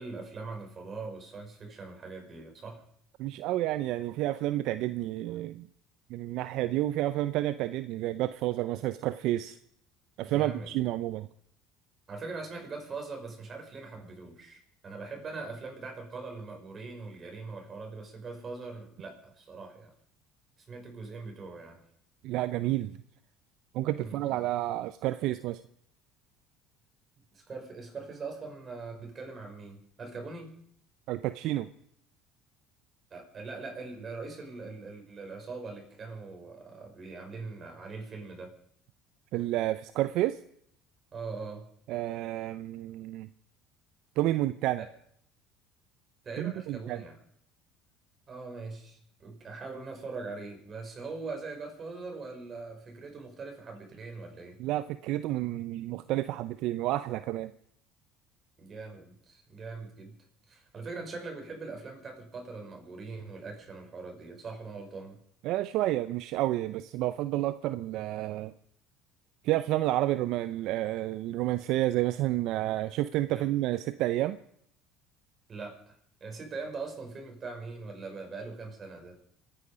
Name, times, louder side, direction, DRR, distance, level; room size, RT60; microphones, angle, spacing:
voice 1, 0.0-2.8 10.2-10.8 12.1-19.9 20.7-21.8 24.0-24.2 27.3-30.5 33.1-38.5 41.1-41.7 44.8-44.9 46.2-47.2 48.3-54.6 58.6-60.2 60.5-65.2 73.3-73.5 75.5-76.0 76.2-79.2, right 3 dB, 35° right, 2 dB, 5.7 m, -41 dB
voice 2, 3.2-5.7 6.1-9.6 10.2-11.3 22.2-22.9 23.7-25.6 31.1-31.7 39.3-40.4 41.9-43.3 44.2-44.8 46.4-47.0 54.6-57.5 65.4-68.5 69.4-74.4, right 15 dB, 70° right, 13 dB, 0.5 m, -30 dB
26.5 x 9.9 x 5.1 m, 0.69 s
supercardioid pair, 85°, 0 cm